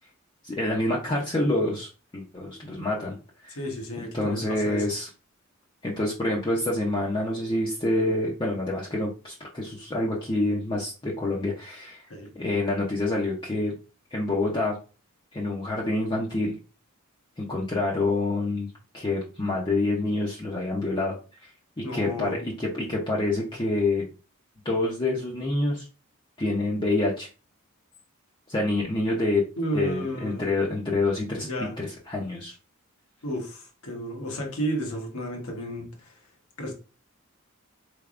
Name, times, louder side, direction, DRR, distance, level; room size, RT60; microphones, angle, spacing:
voice 1, 0.4-3.2 3.4-3.6 4.0-5.1 5.8-12.0 12.3-13.7 14.1-14.8 15.3-16.6 17.4-21.2 21.8-24.0 24.6-25.9 26.4-27.3 28.5-29.4 29.7-32.6, left 2 dB, 20° left, 0.6 m, -27 dB
voice 2, 3.5-4.8 12.1-12.3 21.8-22.5 29.6-30.4 31.4-31.7 33.2-36.1 36.6-36.7, equal, 75° left, 1.0 m, -32 dB
3.9 x 3.3 x 2.4 m
head